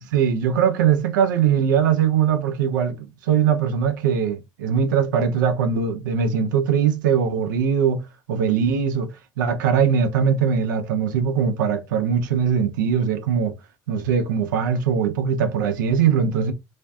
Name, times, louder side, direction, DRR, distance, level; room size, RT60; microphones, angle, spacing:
voice 1, 0.0-8.0 8.3-13.5 13.9-16.5, right 7 dB, 80° right, 0.4 m, -21 dB
2.5 x 2.3 x 2.2 m
hypercardioid pair, 60°, 10 cm